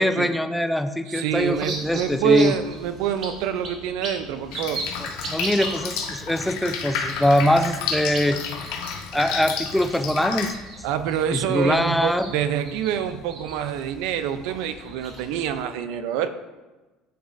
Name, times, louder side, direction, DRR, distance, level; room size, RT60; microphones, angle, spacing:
voice 1, 0.0-2.5 5.0-8.5 9.1-10.5 11.3-12.3, left 1 dB, 5° left, 9 dB, 0.4 m, -23 dB
voice 2, 1.1-4.8 10.8-16.3, right 8 dB, 75° right, 11 dB, 0.5 m, -26 dB
sound 1, 1.3-15.6, right 2 dB, 50° right, 2.0 m, -38 dB
Drip, 4.5-10.5, left 6 dB, 75° left, 0.9 m, -31 dB
10.0 x 4.1 x 2.6 m, 1.2 s
supercardioid pair, 105°, 0 cm